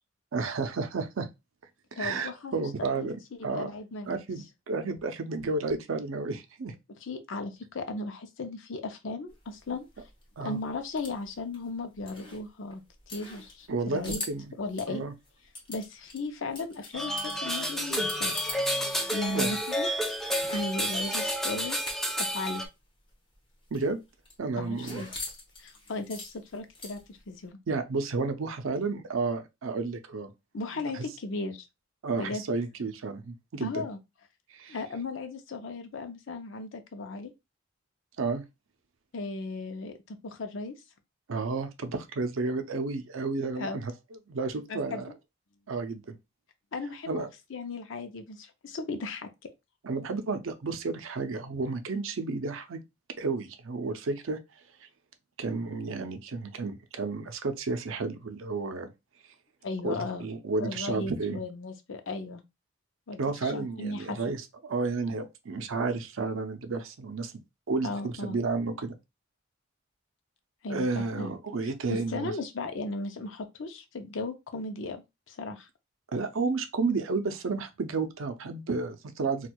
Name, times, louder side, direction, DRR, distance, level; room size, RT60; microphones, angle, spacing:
voice 1, 0.3-1.3 1.9-3.2 3.4-3.7 4.1-6.8 10.4-10.6 13.7-14.4 14.9-15.1 19.3-19.6 23.7-24.0 24.4-25.0 27.7-30.3 30.7-31.1 32.0-33.9 34.5-34.8 38.2-38.4 41.3-43.9 44.3-45.1 45.7-46.2 47.1-47.3 49.8-52.8 53.2-54.4 54.8-54.9 55.4-58.9 59.8-61.4 63.2-67.3 67.7-69.0 70.7-72.3 76.1-79.5, right 4 dB, 80° right, 0.5 m, -32 dB
voice 2, 2.0-2.6 2.9-3.1 3.4-4.2 7.0-10.1 10.4-12.8 13.1-14.2 14.6-15.1 15.7-18.3 18.7-20.1 20.5-21.8 22.2-22.6 24.6-25.1 25.6-27.6 30.5-31.6 32.2-32.4 33.6-34.0 34.7-37.3 39.1-40.7 43.6-43.8 44.7-45.0 46.7-49.3 59.6-60.3 60.6-62.4 63.1-64.2 67.8-68.4 70.6-71.3 71.9-75.7, left 3 dB, 70° left, 0.6 m, -36 dB
sound 1, 9.3-18.7 19.0-22.3 22.6-22.7 23.0-27.3, left 2 dB, 25° left, 0.8 m, -44 dB
sound 2, 16.9-22.7, equal, ahead, 0.3 m, -30 dB
4.4 x 2.3 x 2.2 m
head